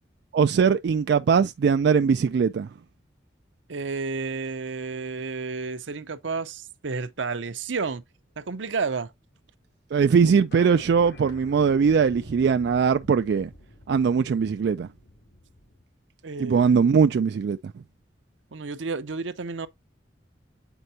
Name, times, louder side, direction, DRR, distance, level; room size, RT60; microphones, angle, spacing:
voice 1, 0.3-2.7 9.9-13.5 13.9-14.9 16.4-17.6, right 6 dB, 60° right, 0.3 m, -21 dB
voice 2, 3.7-8.0 8.4-9.1 16.2-16.8 18.5-19.7, right 4 dB, 85° right, 0.7 m, -31 dB
sound 1, 10.5-15.8, left 1 dB, 65° left, 2.6 m, -48 dB
8.0 x 4.4 x 2.7 m
head